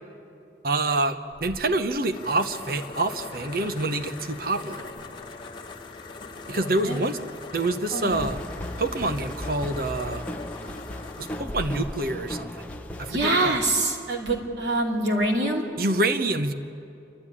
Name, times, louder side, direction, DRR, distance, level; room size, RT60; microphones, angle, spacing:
voice 1, 0.6-4.9 6.5-7.2 7.5-8.4 8.8-10.3 11.2-12.6 13.0-13.6 15.8-16.5, right 2 dB, 55° right, 9 dB, 1.0 m, -26 dB
sound 1, 1.3-13.1, left 3 dB, 25° left, 1.6 m, -41 dB
sound 2, 8.1-14.1, equal, 5° left, 1.0 m, -37 dB
voice 2, 13.1-15.6, right 2 dB, 80° right, 0 dB, 3.0 m, -25 dB
27.5 x 13.0 x 9.9 m, 2.7 s
head